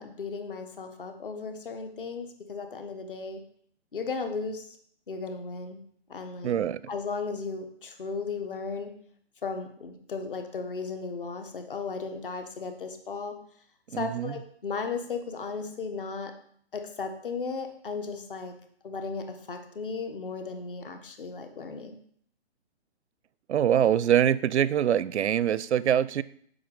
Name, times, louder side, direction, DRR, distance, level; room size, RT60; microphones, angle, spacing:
voice 1, 0.0-3.4 3.9-4.6 5.1-5.8 6.1-6.5 6.9-8.9 9.4-13.3 13.9-16.3 16.7-18.5 18.8-22.0, left 4 dB, 50° left, 6 dB, 1.3 m, -35 dB
voice 2, 6.4-6.8 13.9-14.4 23.5-26.2, right 10 dB, 85° right, 18 dB, 0.5 m, -24 dB
7.7 x 5.3 x 5.5 m, 0.62 s
hypercardioid pair, 175°, 33 cm